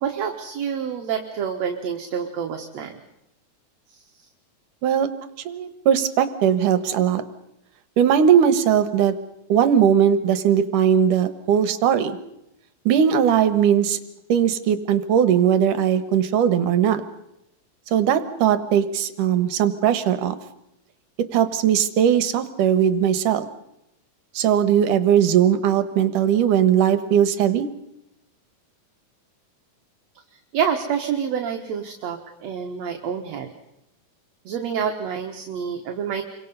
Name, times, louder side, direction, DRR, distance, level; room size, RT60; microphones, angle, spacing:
voice 1, 0.0-3.0 3.9-4.0 30.5-33.5 34.5-36.2, right 7 dB, 60° right, 4 dB, 2.4 m, -27 dB
voice 2, 5.5-7.2 8.0-9.2 9.5-12.2 12.9-14.0 14.3-17.0 17.9-20.4 21.3-23.5 24.3-27.7, right 9 dB, 75° right, 11 dB, 2.7 m, -19 dB
29.0 x 24.0 x 5.5 m, 0.84 s
omnidirectional pair, 3.8 m